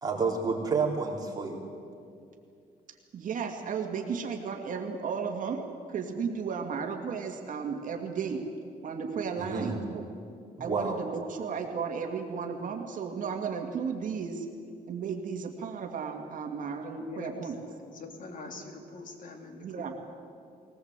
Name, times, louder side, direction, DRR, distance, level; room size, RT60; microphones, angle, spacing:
voice 1, 0.0-1.6 9.4-9.8 10.6-11.0, right 4 dB, 25° right, -2 dB, 3.8 m, -29 dB
voice 2, 3.1-8.4 8.8-10.0 10.6-14.5 14.9-17.6 19.6-19.9, right 6 dB, 55° right, 3 dB, 2.2 m, -34 dB
voice 3, 17.0-19.9, left 3 dB, 55° left, 4 dB, 2.9 m, -44 dB
21.0 x 18.5 x 8.2 m, 2.5 s
cardioid pair, 145°, 16 cm